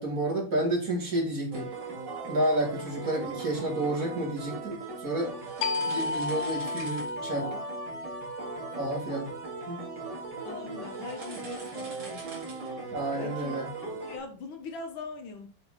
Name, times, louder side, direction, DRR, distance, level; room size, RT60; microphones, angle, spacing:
voice 1, 0.0-1.7 2.3-5.3 5.8-7.5 8.8-9.3 9.7-9.8 12.9-13.7, right 1 dB, 40° right, 2.3 m, -30 dB
sound 1, 1.5-14.2, right 4 dB, 55° right, 2.7 m, -39 dB
sound 2, 5.6-10.9, left 3 dB, 90° left, 0.7 m, -35 dB
voice 2, 10.4-12.4 13.1-15.5, left 4 dB, 65° left, 1.6 m, -41 dB
6.8 x 4.1 x 3.9 m
omnidirectional pair, 2.4 m